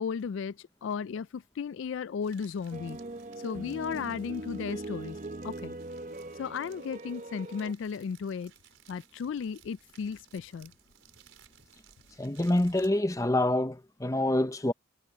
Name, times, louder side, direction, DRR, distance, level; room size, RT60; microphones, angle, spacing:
voice 1, 0.0-3.0 3.4-5.2 5.4-5.8 6.4-8.5 8.9-10.7, left 6 dB, 65° left, 0.3 m, -35 dB
sound 1, 2.2-12.9, right 9 dB, 75° right, 5.1 m, -60 dB
sound 2, 2.7-7.7, right 2 dB, 40° right, 0.8 m, -41 dB
voice 2, 12.2-14.7, left 1 dB, 15° left, 0.7 m, -26 dB
head